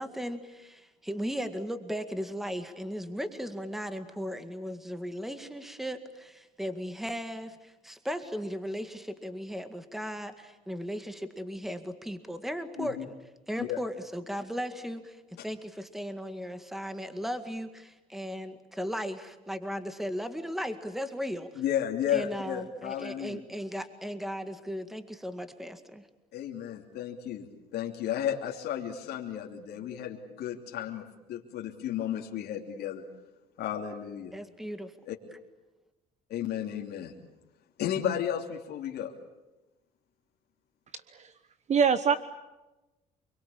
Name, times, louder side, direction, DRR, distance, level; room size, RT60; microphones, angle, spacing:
voice 1, 0.0-13.2 13.5-21.6 22.1-26.0 34.3-34.9, equal, ahead, 9 dB, 2.0 m, -36 dB
voice 2, 21.6-23.4 26.3-33.0 33.6-34.3 35.1-35.2 36.3-37.1 37.8-39.1, left 10 dB, 75° left, 1 dB, 3.0 m, -33 dB
voice 3, 40.9-41.3 41.7-42.2, right 6 dB, 45° right, 12 dB, 1.1 m, -24 dB
29.5 x 22.0 x 8.7 m, 1.0 s
cardioid pair, 110°, 17 cm